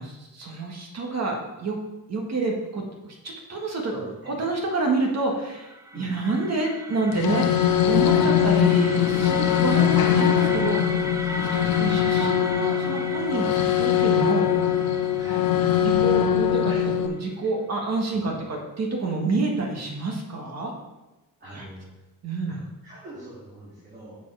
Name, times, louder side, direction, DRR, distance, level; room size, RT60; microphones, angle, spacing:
voice 1, 0.0-1.8 2.1-2.8 3.2-3.9 4.3-11.0 11.4-14.7 15.8-20.7 21.5-21.6 22.2-22.6, right 3 dB, 50° right, 1 dB, 1.7 m, -28 dB
voice 2, 3.9-4.3 5.9-6.1 8.1-8.6 9.7-9.9 15.2-15.5 16.6-16.8 18.1-18.2 21.4-21.9 22.5-24.2, right 1 dB, 30° right, -9 dB, 2.7 m, -41 dB
sound 1, 5.3-17.3, right 1 dB, 10° right, 0.4 m, -37 dB
sound 2, 7.1-17.1, left 10 dB, 85° left, 0.7 m, -21 dB
7.2 x 7.1 x 4.8 m, 1.0 s
wide cardioid pair, 160°, 35 cm